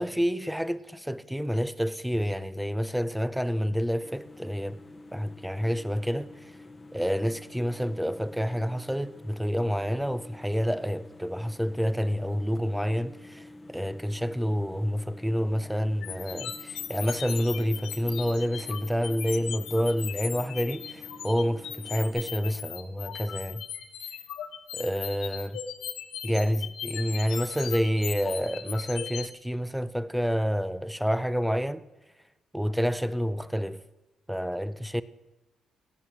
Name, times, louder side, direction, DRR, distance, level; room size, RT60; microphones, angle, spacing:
voice 1, 0.0-4.8 5.1-6.5 6.9-23.6 24.7-25.6 26.2-31.8 32.5-33.8 34.3-35.0, equal, 5° right, 0.7 m, -28 dB
sound 1, 4.0-22.3, left 2 dB, 25° left, 0.9 m, -49 dB
sound 2, 16.0-29.3, left 9 dB, 85° left, 1.5 m, -38 dB
17.0 x 10.0 x 7.8 m
cardioid pair, 90°, 0 cm